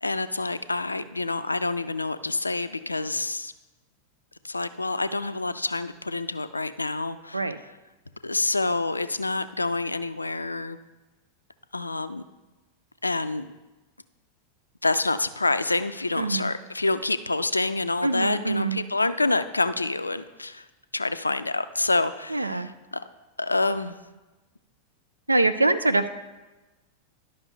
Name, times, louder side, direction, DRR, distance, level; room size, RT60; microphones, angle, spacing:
voice 1, 0.0-3.5 4.4-7.4 8.2-10.8 11.7-12.2 13.0-13.5 14.8-20.6 20.9-23.0 23.4-23.9, left 2 dB, 80° left, 12 dB, 0.3 m, -27 dB
voice 2, 16.2-16.5 18.0-18.8 22.3-22.7 25.3-26.1, right 2 dB, 85° right, 11 dB, 0.4 m, -24 dB
11.5 x 5.7 x 3.2 m, 1.1 s
figure-of-eight pair, 90°, 0 cm